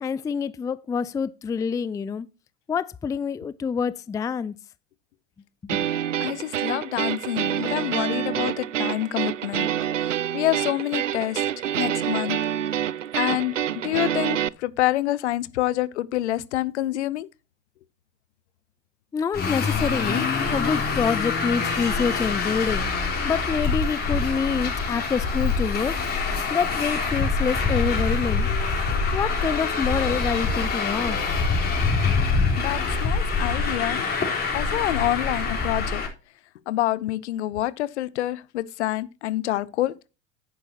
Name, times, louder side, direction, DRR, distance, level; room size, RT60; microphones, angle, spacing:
voice 1, 0.0-2.3 2.7-4.5 5.6-5.8 19.1-22.9 23.2-26.0 26.5-28.5 29.1-31.2, left 6 dB, 10° left, 0.4 m, -27 dB
sound 1, 5.7-14.5, right 10 dB, 90° right, 0.5 m, -27 dB
voice 2, 6.2-9.7 10.3-11.4 11.8-12.4 13.1-17.3 32.6-34.1 34.5-36.0 36.7-39.9, left 14 dB, 65° left, 0.9 m, -27 dB
Traffic noise roadway noise, 19.3-36.1, left 4 dB, 25° left, 3.9 m, -25 dB
10.5 x 9.6 x 2.9 m
figure-of-eight pair, 80°, 36 cm